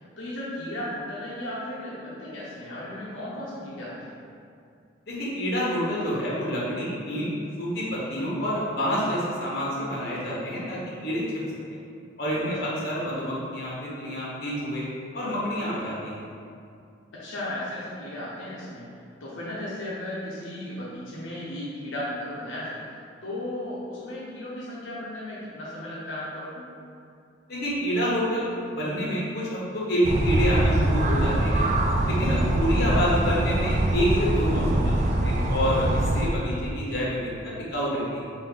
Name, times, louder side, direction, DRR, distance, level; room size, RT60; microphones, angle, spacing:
voice 1, 0.2-4.1 12.3-12.6 17.1-18.9 19.2-22.8 23.2-26.7 32.2-32.5, left 1 dB, 80° left, -7 dB, 0.7 m, -35 dB
voice 2, 5.0-7.3 7.6-11.2 11.7-11.8 12.2-14.8 15.1-16.2 27.5-31.7 32.0-34.9 35.2-37.3 37.7-38.3, equal, 55° left, -6 dB, 1.2 m, -27 dB
sound 1, 30.0-36.3, right 1 dB, 35° right, 0.3 m, -23 dB
5.3 x 2.6 x 3.8 m, 2.4 s
head